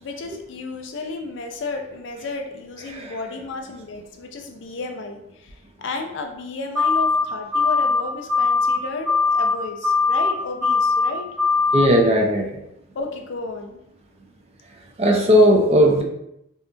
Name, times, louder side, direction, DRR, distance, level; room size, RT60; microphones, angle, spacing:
voice 1, 0.0-5.5 5.8-11.3 12.9-13.8, left 3 dB, 70° left, 3 dB, 0.4 m, -33 dB
sound 1, 6.8-7.2 7.5-8.0 8.3-8.8 9.1-9.5 9.8-10.3 10.6-11.1 11.4-11.9, left 4 dB, 5° right, 0.8 m, -19 dB
voice 2, 11.7-12.5 15.0-16.0, equal, 35° right, 2 dB, 0.4 m, -16 dB
2.8 x 2.3 x 2.5 m, 0.78 s
head